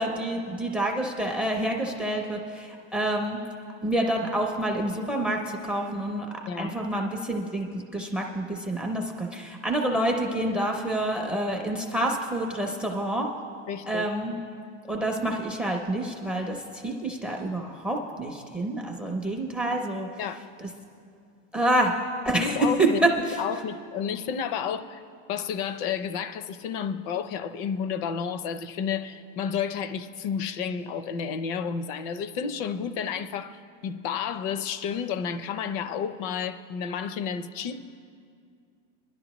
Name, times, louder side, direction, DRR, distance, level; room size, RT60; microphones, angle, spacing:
voice 1, 0.0-3.4 3.8-6.3 6.6-13.3 13.9-14.3 14.9-20.1 20.6-20.7 21.5-21.9 22.2-23.4, right 1 dB, 5° right, 0.4 m, -27 dB
voice 2, 13.7-14.0 14.3-14.4 20.2-20.4 22.4-25.0 25.3-37.8, left 7 dB, 45° left, 0.6 m, -31 dB
21.0 x 11.5 x 3.0 m
supercardioid pair, 160°, 38 cm